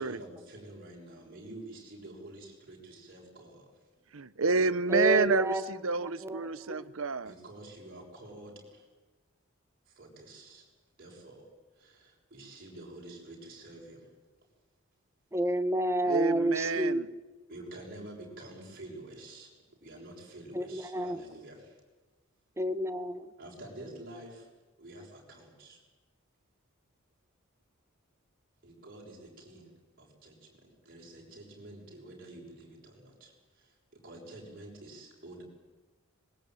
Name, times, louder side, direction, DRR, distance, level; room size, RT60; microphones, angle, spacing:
voice 1, 0.0-3.7 7.2-8.9 9.9-10.6 11.0-11.5 11.8-14.0 17.5-19.5 19.8-21.8 23.4-24.5 24.8-25.8 28.6-35.4, right 1 dB, 45° right, -2 dB, 6.5 m, -48 dB
voice 2, 4.1-7.3 16.1-17.1, right 4 dB, 70° right, 16 dB, 1.0 m, -29 dB
voice 3, 4.9-5.6 6.2-6.9 15.3-17.0 20.5-21.2 22.6-23.3, right 1 dB, 15° right, 12 dB, 1.2 m, -30 dB
25.5 x 21.0 x 9.2 m, 1.2 s
head